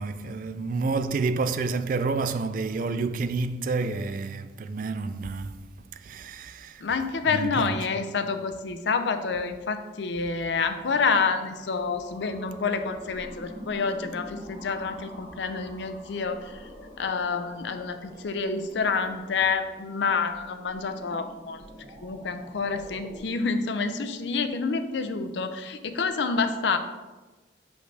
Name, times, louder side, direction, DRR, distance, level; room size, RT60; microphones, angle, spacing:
voice 1, 0.0-5.5 6.0-6.8 7.3-7.7, right 4 dB, 45° right, 0.3 m, -29 dB
voice 2, 6.8-16.6 17.0-21.6 22.0-26.8, left 4 dB, 75° left, 0.5 m, -28 dB
sound 1, 10.7-23.2, equal, 30° right, 1.4 m, -47 dB
6.2 x 5.3 x 3.3 m
head